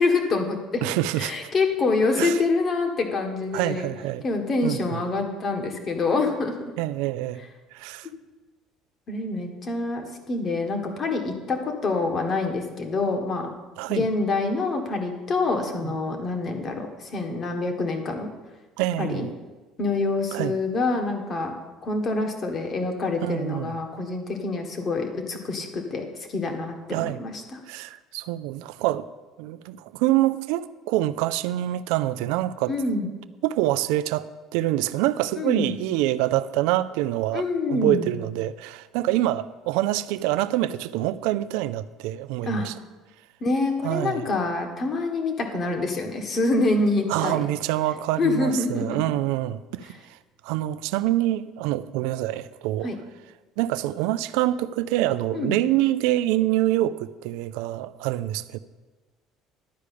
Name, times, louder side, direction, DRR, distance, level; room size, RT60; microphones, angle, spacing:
voice 1, 0.0-3.9 4.2-6.5 9.1-13.5 13.9-18.3 19.0-19.3 19.8-21.6 21.8-27.6 32.7-33.1 35.4-35.7 37.3-38.1 42.4-42.7 43.4-47.5 48.2-49.0 52.8-53.0 55.3-55.6, left 3 dB, 40° left, 1.7 m, -26 dB
voice 2, 0.8-1.3 2.2-2.4 3.5-4.2 4.6-5.0 6.8-7.4 7.7-8.1 13.8-14.1 15.8-15.9 18.8-19.3 20.3-20.5 23.2-23.7 26.9-27.2 27.7-29.1 29.4-32.7 33.4-42.7 43.8-44.2 47.1-50.0 50.4-52.9 53.6-58.6, right 14 dB, 85° right, 0.4 m, -26 dB
11.5 x 4.9 x 8.4 m
cardioid pair, 110°, 0 cm